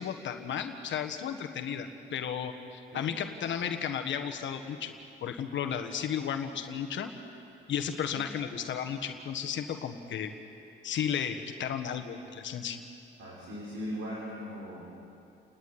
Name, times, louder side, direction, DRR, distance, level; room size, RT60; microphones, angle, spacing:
voice 1, 0.0-4.9 5.2-7.1 7.7-10.3 10.8-12.8, left 8 dB, 70° left, 6 dB, 1.4 m, -34 dB
voice 2, 13.2-14.8, equal, 70° right, -6 dB, 5.6 m, -39 dB
29.0 x 11.0 x 9.6 m, 2.6 s
cardioid pair, 90°, 20 cm